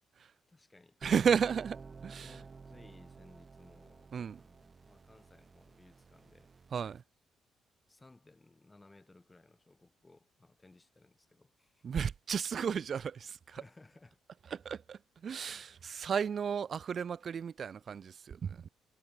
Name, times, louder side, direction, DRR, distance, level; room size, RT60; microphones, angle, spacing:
voice 1, 0.5-1.0 2.2-6.5 7.9-11.8 13.5-14.2, left 2 dB, 20° left, 3.3 m, -61 dB
sound 1, 1.0-7.0, right 4 dB, 40° right, 4.2 m, -52 dB
voice 2, 1.0-2.4 4.1-4.4 6.7-7.0 11.8-13.6 14.5-18.6, right 7 dB, 55° right, 0.5 m, -33 dB
supercardioid pair, 65°, 0 cm